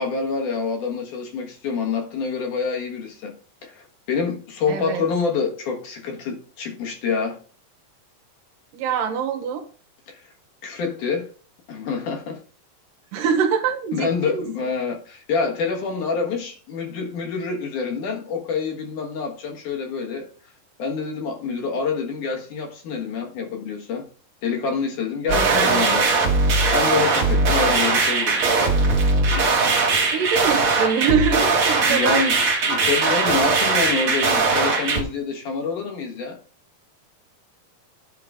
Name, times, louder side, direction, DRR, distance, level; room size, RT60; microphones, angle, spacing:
voice 1, 0.0-3.3 3.6-7.4 10.1-10.3 10.6-11.3 11.7-12.4 13.9-20.3 20.8-24.0 24.4-26.1 26.7-28.4 29.3-29.6 31.9-32.4 32.6-36.4, left 5 dB, 70° left, 2.9 m, -27 dB
voice 2, 4.7-5.0 8.7-9.6 13.1-14.7 25.3-26.0 30.1-32.3, right 7 dB, 80° right, 2.7 m, -24 dB
sound 1, 25.3-35.0, right 3 dB, 50° right, 2.0 m, -20 dB
10.5 x 3.8 x 4.9 m
omnidirectional pair, 3.9 m